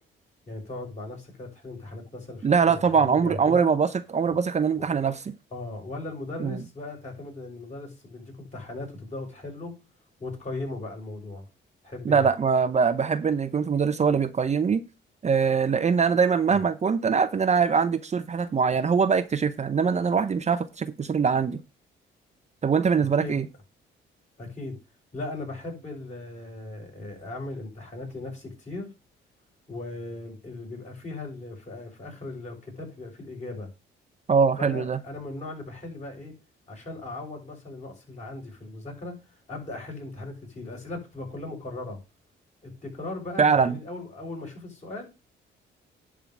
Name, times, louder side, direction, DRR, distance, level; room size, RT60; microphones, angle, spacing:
voice 1, 0.5-3.7 4.2-4.4 4.8-4.9 5.5-9.7 10.2-11.4 11.8-12.3 16.5-16.6 23.2-23.4 24.4-24.8 25.1-28.9 29.7-33.7 34.6-36.3 36.7-39.2 39.5-42.0 42.6-45.1, left 2 dB, 35° left, 6.4 m, -38 dB
voice 2, 2.4-5.3 6.4-6.6 12.0-14.8 15.2-21.6 22.6-23.4 34.3-35.0 43.4-43.8, right 6 dB, 35° right, 0.7 m, -23 dB
10.5 x 3.8 x 7.2 m
cardioid pair, 90°, 20 cm